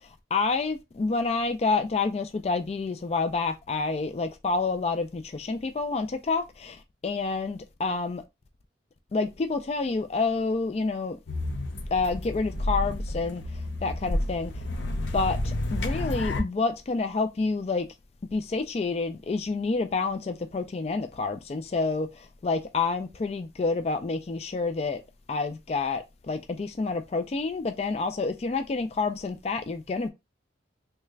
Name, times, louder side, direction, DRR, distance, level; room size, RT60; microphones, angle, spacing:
voice 1, 0.3-8.2 9.1-11.2 11.9-13.4 13.8-14.5 15.1-17.9 18.3-25.0 25.3-30.1, left 4 dB, 35° left, 0.3 m, -28 dB
sound 1, 11.3-16.4, left 1 dB, 75° left, 0.7 m, -30 dB
3.3 x 2.4 x 3.1 m
head